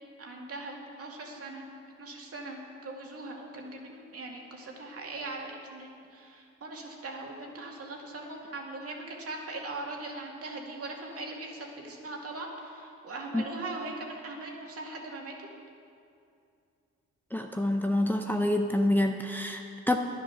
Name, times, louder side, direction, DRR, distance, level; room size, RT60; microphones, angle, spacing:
voice 1, 0.2-1.6 2.0-15.3, right 2 dB, 50° right, 0 dB, 2.2 m, -40 dB
voice 2, 17.3-20.0, left 1 dB, 5° left, 3 dB, 0.6 m, -27 dB
10.5 x 10.5 x 6.2 m, 2.5 s
cardioid pair, 90°, 30 cm